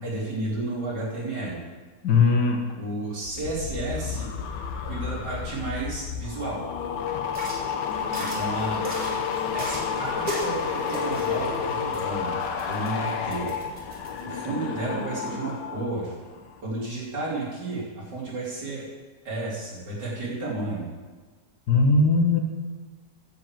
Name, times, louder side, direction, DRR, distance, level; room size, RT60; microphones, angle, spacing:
voice 1, 0.0-1.6 2.7-4.3 4.8-6.6 8.1-8.8 9.5-13.6 14.2-16.2 16.6-18.9 19.2-20.9, right 2 dB, 75° right, -6 dB, 4.0 m, -32 dB
voice 2, 2.0-2.6 21.7-22.4, left 3 dB, 70° left, 3 dB, 2.0 m, -19 dB
sound 1, 3.2-15.9 16.2-16.6, left 6 dB, 90° left, 1.6 m, -31 dB
sound 2, 7.3-14.2, right 1 dB, 55° right, 3.1 m, -38 dB
10.0 x 7.8 x 7.5 m, 1.4 s
omnidirectional pair, 1.8 m